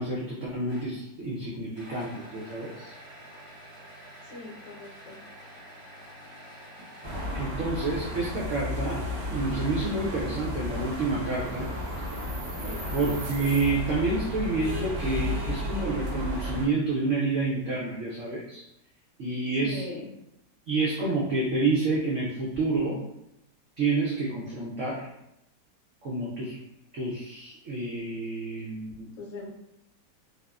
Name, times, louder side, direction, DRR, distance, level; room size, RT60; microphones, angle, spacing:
voice 1, 0.0-2.9 7.3-11.7 12.9-18.6 19.2-19.8 20.7-23.0 23.8-25.1 26.0-26.6 26.9-29.1, right 3 dB, 80° right, -5 dB, 0.6 m, -29 dB
sound 1, 0.7-1.0 1.7-7.3 7.8-8.6, equal, 45° right, 1.5 m, -48 dB
voice 2, 4.2-5.2 12.6-13.0 19.6-20.1 29.2-29.5, left 3 dB, 80° left, -2 dB, 1.3 m, -40 dB
sound 2, 7.0-16.7, left 1 dB, 65° right, 1.0 m, -33 dB
3.4 x 2.0 x 2.3 m, 0.83 s
omnidirectional pair, 2.0 m